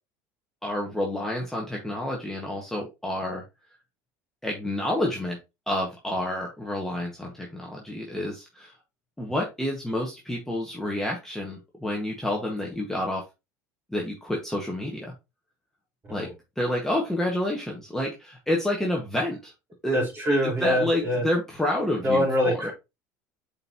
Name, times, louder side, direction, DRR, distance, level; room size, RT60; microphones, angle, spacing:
voice 1, 0.6-3.4 4.4-5.4 5.7-8.7 9.2-13.2 13.9-15.1 16.1-16.3 16.6-19.5 19.8-20.1 20.4-22.7, left 1 dB, 5° left, -2 dB, 1.7 m, -29 dB
voice 2, 19.9-21.2 22.0-22.7, left 1 dB, 25° right, -2 dB, 4.0 m, -24 dB
7.5 x 4.6 x 3.0 m, 0.25 s
supercardioid pair, 95°, 9 cm